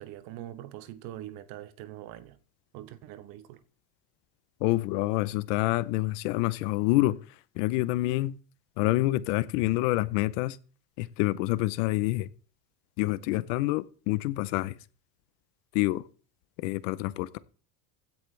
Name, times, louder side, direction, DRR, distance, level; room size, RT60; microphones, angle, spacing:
voice 1, 0.0-2.4 2.7-3.6, right 13 dB, 45° right, 1.0 m, -43 dB
voice 2, 4.6-7.2 7.6-8.4 8.8-10.6 11.0-12.3 13.0-14.7 15.7-16.0 16.6-17.4, left 18 dB, 50° left, 0.6 m, -27 dB
16.0 x 10.5 x 3.2 m
cardioid pair, 175°, 49 cm